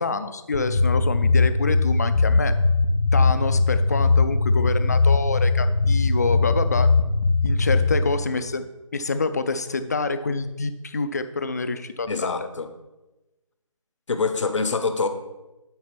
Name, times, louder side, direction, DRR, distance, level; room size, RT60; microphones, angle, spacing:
voice 1, 0.0-2.6 3.1-6.9 7.4-8.6 8.9-12.4, left 3 dB, 30° left, 11 dB, 0.4 m, -27 dB
sound 1, 0.5-7.9, left 3 dB, 80° left, 1.8 m, -20 dB
voice 2, 12.1-12.7 14.1-15.1, left 4 dB, 60° left, 9 dB, 0.8 m, -25 dB
8.7 x 4.2 x 5.9 m, 1.1 s
figure-of-eight pair, 160°, 17 cm